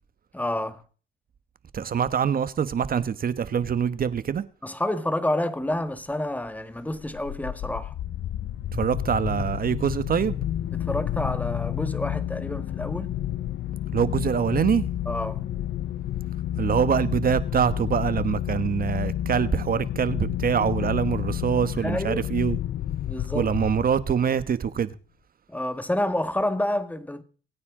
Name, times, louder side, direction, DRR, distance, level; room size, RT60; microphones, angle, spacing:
voice 1, 0.3-0.8 4.6-7.9 10.7-13.2 15.0-15.4 20.8-20.9 21.8-22.2 23.0-23.5 25.5-27.2, left 1 dB, 10° left, 1.7 m, -29 dB
voice 2, 1.7-4.4 8.7-10.4 13.9-14.8 16.6-22.6 23.3-24.9, right 7 dB, 45° right, 1.3 m, -24 dB
sound 1, 6.9-24.3, left 12 dB, 60° left, 0.6 m, -30 dB
24.5 x 9.5 x 3.8 m
cardioid pair, 90°, 20 cm